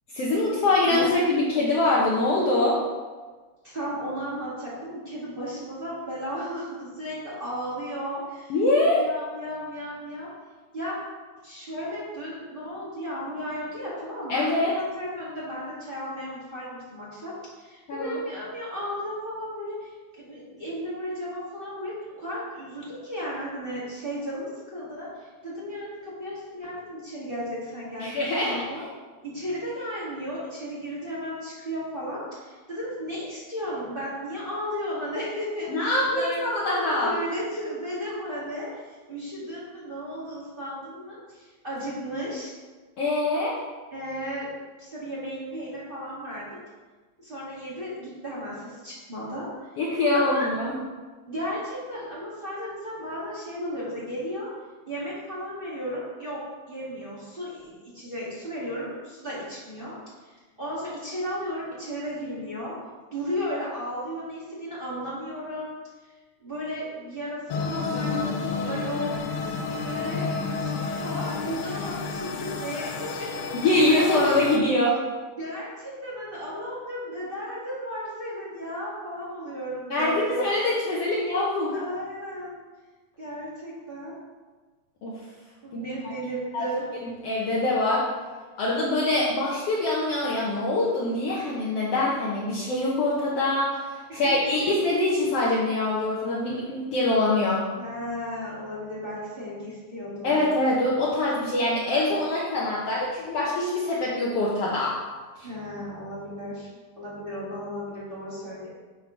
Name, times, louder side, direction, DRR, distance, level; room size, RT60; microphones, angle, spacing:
voice 1, 0.1-2.8 8.5-9.0 14.3-14.7 17.9-18.2 28.0-28.6 35.7-37.1 43.0-43.5 49.8-50.8 73.5-74.9 79.9-81.8 85.0-85.1 85.7-86.1 86.5-86.7 87.0-88.1 88.6-97.6 100.2-104.9 105.4-105.5, left 2 dB, 65° left, -5 dB, 1.7 m, -24 dB
voice 2, 3.6-8.5 8.9-10.3 10.7-11.0 11.4-28.1 28.4-28.8 29.2-42.5 43.9-44.5 44.8-46.6 47.2-49.5 50.1-50.5 51.3-54.5 54.8-59.9 60.2-62.7 63.1-65.7 66.0-66.1 66.4-69.1 69.8-74.2 74.5-74.7 75.4-80.5 81.7-82.6 83.2-84.1 85.6-86.8 94.1-94.7 97.8-100.3 105.4-106.7 107.0-108.7, equal, 20° right, -8 dB, 1.7 m, -34 dB
sound 1, 67.5-74.6, left 4 dB, 85° left, 2.1 m, -31 dB
7.7 x 3.7 x 5.6 m, 1.3 s
omnidirectional pair, 3.5 m